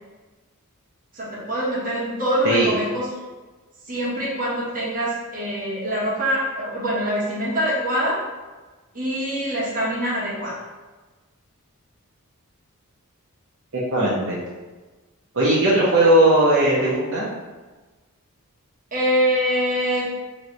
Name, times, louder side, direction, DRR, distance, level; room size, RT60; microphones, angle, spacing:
voice 1, 1.1-3.1 3.9-8.2 8.9-10.6 18.9-20.1, equal, 40° right, -7 dB, 1.3 m, -24 dB
voice 2, 13.7-14.4 15.3-17.3, right 1 dB, 65° right, -7 dB, 0.8 m, -18 dB
3.2 x 3.2 x 3.9 m, 1.3 s
head